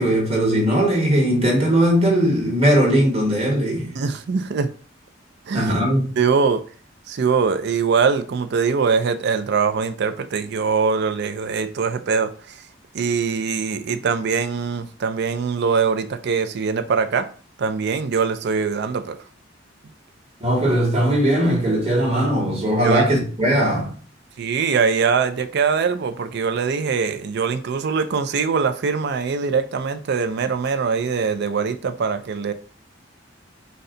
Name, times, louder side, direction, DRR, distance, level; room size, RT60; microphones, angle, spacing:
voice 1, 0.0-3.9 5.5-6.0 20.4-23.9, right 1 dB, 30° right, 1.2 m, -19 dB
voice 2, 3.9-4.7 5.5-5.7 6.2-6.6 7.1-12.3 12.9-17.3 17.6-19.2 22.8-23.0 24.4-32.5, right 5 dB, 60° right, 0.4 m, -22 dB
4.1 x 2.1 x 3.7 m
head